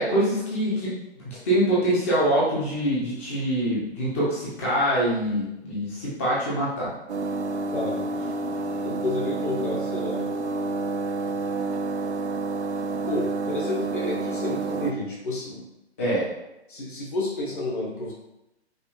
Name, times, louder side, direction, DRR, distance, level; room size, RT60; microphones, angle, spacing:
voice 1, 0.0-6.9 16.0-16.3, right 1 dB, 15° left, -7 dB, 0.4 m, -24 dB
sound 1, 7.1-14.9, right 3 dB, 85° right, 0.5 m, -29 dB
voice 2, 7.7-8.1 8.8-10.3 13.1-15.6 16.7-18.1, left 2 dB, 50° left, -4 dB, 0.9 m, -30 dB
5.0 x 2.4 x 2.3 m, 0.90 s
figure-of-eight pair, 130°, 34 cm